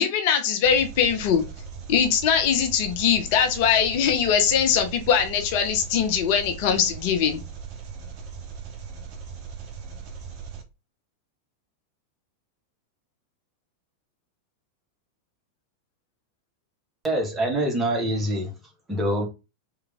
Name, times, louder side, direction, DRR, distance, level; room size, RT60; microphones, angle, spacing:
voice 1, 0.0-1.4 1.9-7.4, left 7 dB, 45° left, 0.7 m, -21 dB
Engine, 0.6-10.6, right 6 dB, 40° right, 1.0 m, -39 dB
voice 2, 17.0-18.5 18.9-19.3, right 1 dB, 15° right, 1.5 m, -25 dB
3.4 x 3.2 x 3.6 m
figure-of-eight pair, 90°, 0 cm